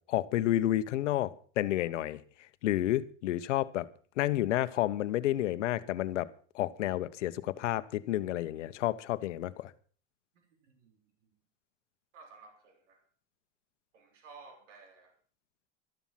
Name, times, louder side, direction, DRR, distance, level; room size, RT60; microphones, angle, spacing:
voice 1, 0.1-2.2 2.6-3.9 4.2-6.3 6.5-9.7, left 14 dB, 85° left, 1.1 m, -30 dB
voice 2, 10.6-11.3 12.1-13.1 13.9-15.1, right 4 dB, 85° right, 3.7 m, -55 dB
13.0 x 13.0 x 5.8 m
hypercardioid pair, 100°, 36 cm